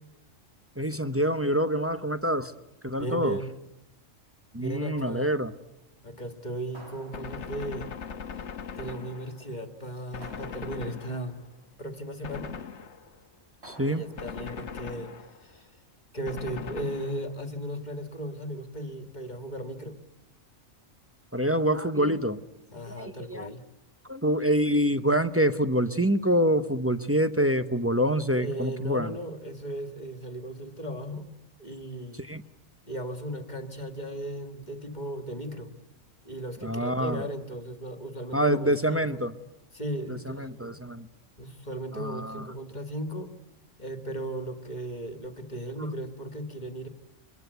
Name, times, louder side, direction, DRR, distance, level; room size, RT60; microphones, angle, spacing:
voice 1, 0.8-2.5 2.8-3.4 4.5-5.5 13.6-14.1 21.3-22.4 22.9-23.5 24.1-29.1 32.3-32.4 36.6-37.2 38.3-39.3 40.1-41.1 41.9-42.5, equal, 15° right, 9 dB, 0.7 m, -26 dB
voice 2, 3.0-3.5 4.5-5.5 6.0-7.9 8.7-11.4 11.8-12.5 13.8-15.1 15.4-15.7 16.1-20.0 22.7-23.6 28.3-31.3 31.6-32.2 32.9-35.7 36.2-39.2 39.7-40.8 41.4-43.3 43.8-46.9, right 1 dB, 35° left, 7 dB, 2.0 m, -36 dB
sound 1, 6.7-7.8 10.2-11.2 13.6-14.5, right 1 dB, 55° right, 7.1 m, -50 dB
Gunshot gunfire, 7.1-9.6 10.1-11.5 12.2-13.3 14.2-15.6 16.3-17.5, left 6 dB, 60° left, 1.4 m, -40 dB
24.0 x 22.0 x 8.2 m, 0.96 s
omnidirectional pair, 1.4 m